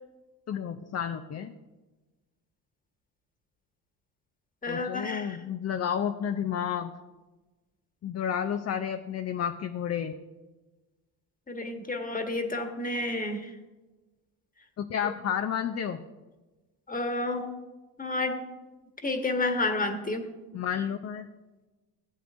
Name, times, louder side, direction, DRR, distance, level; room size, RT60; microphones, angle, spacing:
voice 1, 0.5-1.5 4.7-6.9 8.0-10.1 14.8-16.0 20.5-21.3, left 8 dB, 35° left, 7 dB, 0.6 m, -31 dB
voice 2, 4.6-5.4 11.5-13.5 16.9-17.5 18.0-18.4 19.0-20.3, left 2 dB, 20° left, 5 dB, 1.4 m, -30 dB
15.5 x 7.9 x 2.6 m, 1.2 s
supercardioid pair, 70°, 43 cm